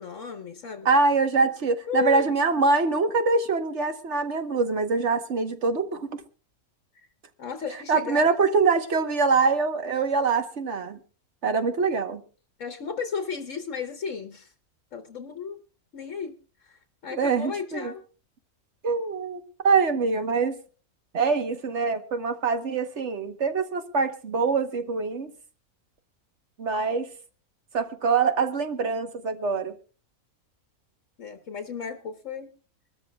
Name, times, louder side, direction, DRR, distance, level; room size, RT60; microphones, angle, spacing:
voice 1, 0.0-0.9 1.9-2.3 7.4-8.3 12.6-14.5 14.9-15.6 15.9-16.4 16.6-18.0 31.2-32.5, left 6 dB, 60° left, 6 dB, 1.4 m, -34 dB
voice 2, 0.8-6.2 7.9-11.0 11.4-12.2 17.1-17.9 18.8-20.6 21.1-25.3 26.6-27.1 27.7-29.7, right 4 dB, 55° right, 8 dB, 1.4 m, -24 dB
25.0 x 13.5 x 2.3 m, 0.37 s
omnidirectional pair, 1.5 m